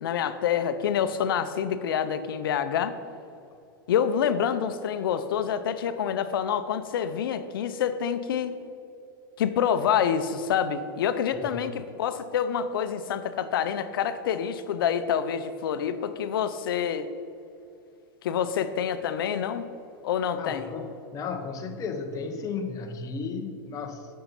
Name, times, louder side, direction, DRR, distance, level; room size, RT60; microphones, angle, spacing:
voice 1, 0.0-2.9 3.9-8.6 9.4-17.1 18.2-19.7 20.0-20.7, left 8 dB, 80° left, 11 dB, 0.6 m, -27 dB
voice 2, 20.4-24.1, left 4 dB, 30° left, 5 dB, 0.9 m, -34 dB
8.7 x 5.6 x 5.6 m, 2.7 s
hypercardioid pair, 125°, 12 cm